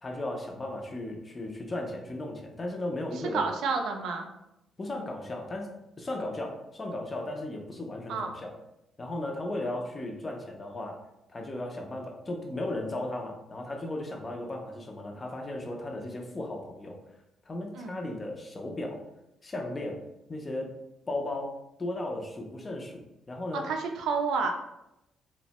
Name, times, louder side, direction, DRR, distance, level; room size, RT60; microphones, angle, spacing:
voice 1, 0.0-3.4 4.8-5.7 6.0-8.5 9.0-11.0 11.3-17.0 17.5-19.0 19.4-20.0 20.3-20.7 21.1-21.5 21.8-23.0 23.3-23.6, left 1 dB, 20° left, 1 dB, 0.4 m, -35 dB
voice 2, 3.3-4.3 8.1-8.3 17.7-18.0 23.5-24.5, right 4 dB, 70° right, 4 dB, 0.4 m, -29 dB
2.9 x 2.1 x 2.8 m, 0.86 s
cardioid pair, 165°, 0 cm